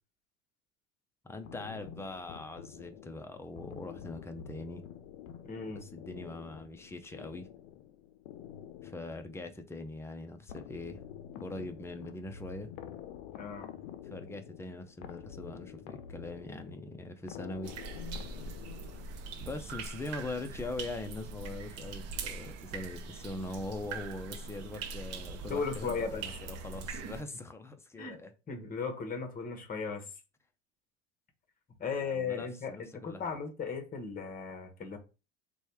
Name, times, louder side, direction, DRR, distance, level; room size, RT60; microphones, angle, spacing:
voice 1, 1.2-4.8 5.7-7.5 8.8-11.0 11.4-12.7 14.0-17.7 19.4-28.3 31.9-33.4, left 2 dB, 5° left, 0.5 m, -42 dB
sound 1, 1.4-19.5, left 9 dB, 65° left, 0.6 m, -48 dB
voice 2, 5.4-5.9 13.4-13.8 25.5-26.3 28.0-28.2 28.5-30.1 31.8-35.0, left 5 dB, 25° left, 1.0 m, -36 dB
sound 2, 17.6-27.2, right 4 dB, 45° right, 0.7 m, -42 dB
3.1 x 2.3 x 4.2 m
hypercardioid pair, 85°, 36 cm